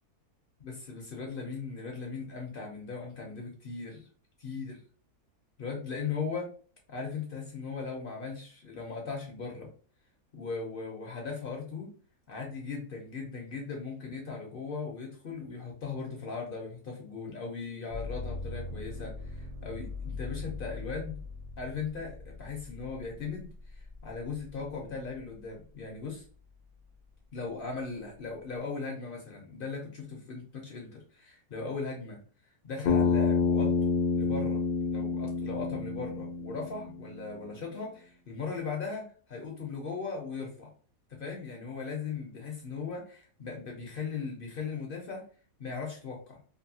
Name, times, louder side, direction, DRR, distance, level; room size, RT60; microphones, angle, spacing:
voice 1, 0.6-4.1 4.4-4.8 5.6-6.5 6.9-9.7 10.3-11.9 12.3-21.2 21.6-26.2 27.3-32.2 32.4-34.6 34.9-40.7 41.1-45.3 45.6-46.4, left 4 dB, 60° left, 0 dB, 0.5 m, -38 dB
sound 1, 17.9-25.7 26.2-27.0, left 3 dB, 70° right, 0.4 m, -42 dB
Bass guitar, 32.9-37.2, left 4 dB, 80° left, 1.1 m, -28 dB
2.7 x 2.6 x 2.7 m, 0.42 s
omnidirectional pair, 1.6 m